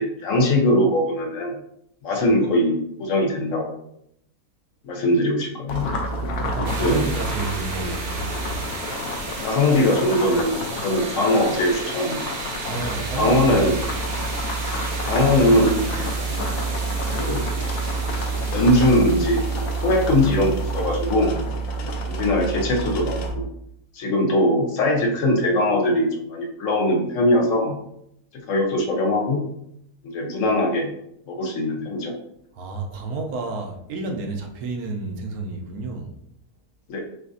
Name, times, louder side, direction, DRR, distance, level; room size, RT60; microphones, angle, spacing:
voice 1, 0.0-1.6 2.0-3.8 4.8-5.9 6.8-7.0 9.4-12.2 13.2-13.8 14.8-16.3 17.1-17.4 18.5-21.4 22.1-23.5 23.9-27.8 28.3-29.4 30.0-30.9 31.3-32.1 36.9-37.0, left 1 dB, 65° left, 1 dB, 1.0 m, -21 dB
sound 1, 5.7-23.3, right 2 dB, 90° left, 1.3 m, -28 dB
voice 2, 6.4-8.7 12.6-13.9 32.5-36.1, right 3 dB, 85° right, 3 dB, 1.2 m, -31 dB
sound 2, 6.6-21.4, right 3 dB, 50° right, 0.6 m, -35 dB
6.2 x 2.5 x 2.6 m, 0.77 s
omnidirectional pair, 1.6 m